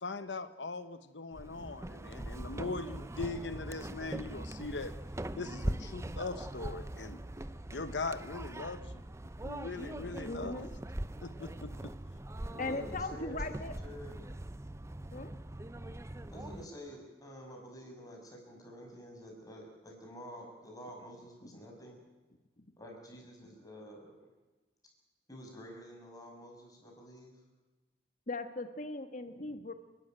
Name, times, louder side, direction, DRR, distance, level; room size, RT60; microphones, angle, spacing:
voice 1, 0.0-4.9 5.4-7.2 7.7-9.0 9.4-10.6 11.2-11.9, left 3 dB, 80° left, 11 dB, 1.1 m, -40 dB
sound 1, 1.3-16.7, right 1 dB, 15° right, 0.6 m, -41 dB
voice 2, 10.2-10.7 12.6-13.8 15.1-15.3 21.4-21.6 22.6-22.7 28.3-29.7, left 2 dB, 45° left, 8 dB, 1.6 m, -39 dB
voice 3, 12.5-13.5 13.8-14.2 16.3-22.0 22.8-24.1 25.3-27.3, equal, 20° left, 0 dB, 6.1 m, -49 dB
30.0 x 12.5 x 9.2 m, 1.2 s
head